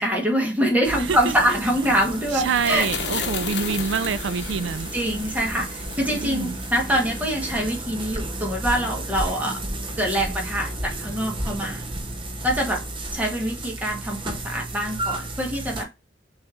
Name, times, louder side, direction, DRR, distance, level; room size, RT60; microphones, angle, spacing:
voice 1, 0.0-2.9 3.2-3.3 4.9-9.6 10.0-11.8 12.4-12.8 13.1-15.9, equal, 10° right, 1.3 m, -24 dB
sound 1, 0.8-15.8, right 1 dB, 30° right, 0.8 m, -33 dB
voice 2, 1.0-1.3 2.3-4.9 6.1-6.6, right 5 dB, 80° right, 0.4 m, -26 dB
sound 2, 1.6-8.2, left 5 dB, 65° left, 0.9 m, -35 dB
6.1 x 3.3 x 2.5 m
head